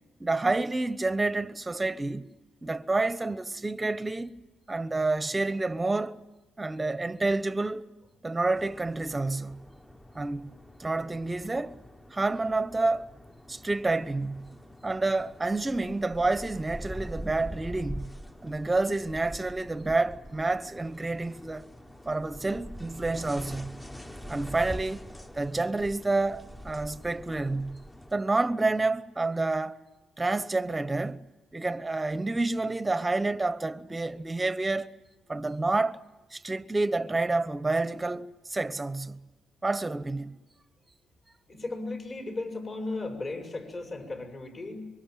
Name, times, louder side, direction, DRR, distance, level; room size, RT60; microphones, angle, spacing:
voice 1, 0.2-2.3 2.6-4.3 4.7-6.2 6.6-7.9 8.2-9.6 10.1-10.5 10.8-11.8 12.1-13.1 13.5-14.5 14.8-18.2 18.4-21.7 22.1-23.8 24.3-25.1 25.3-27.8 28.1-29.8 30.2-31.2 31.5-34.9 35.3-36.0 36.3-39.2 39.6-40.4, right 2 dB, 15° right, 1.0 m, -29 dB
sound 1, 8.5-28.1, equal, 10° left, 1.1 m, -44 dB
voice 2, 41.5-44.9, left 2 dB, 40° left, 6.3 m, -36 dB
25.0 x 23.0 x 9.1 m
cardioid pair, 90°, 0 cm